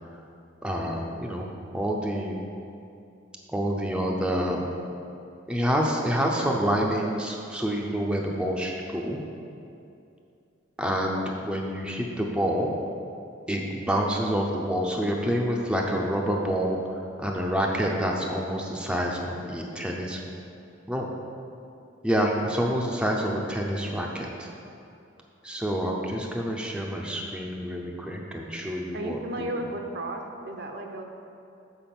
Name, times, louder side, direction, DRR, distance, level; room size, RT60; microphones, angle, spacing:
voice 1, 0.6-1.5 1.7-2.4 3.5-4.7 5.5-9.2 10.8-12.7 13.5-16.8 17.2-20.2 20.9-21.1 22.0-24.5 25.4-29.5, equal, 5° right, -1 dB, 0.5 m, -27 dB
voice 2, 28.9-31.0, right 1 dB, 60° right, 3 dB, 0.7 m, -34 dB
7.0 x 4.6 x 5.9 m, 2.6 s
head